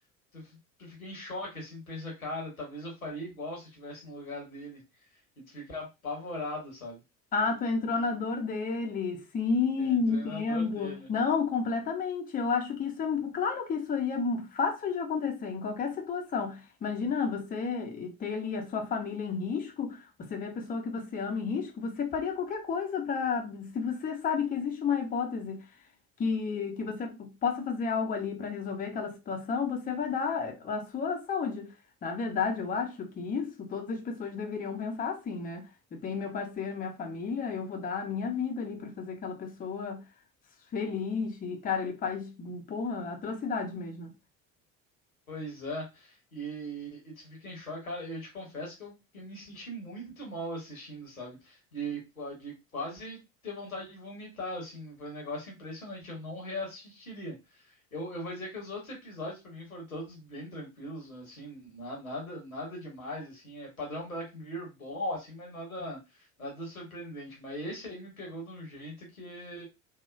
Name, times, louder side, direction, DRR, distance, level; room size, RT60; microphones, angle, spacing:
voice 1, 0.3-4.8 5.4-7.0 9.8-11.1 45.3-69.6, left 1 dB, 85° left, 0.9 m, -40 dB
voice 2, 7.3-25.6 26.2-31.7 32.0-40.0 40.7-44.1, left 5 dB, 20° left, 0.6 m, -32 dB
2.9 x 2.0 x 2.4 m
figure-of-eight pair, 60°, 41 cm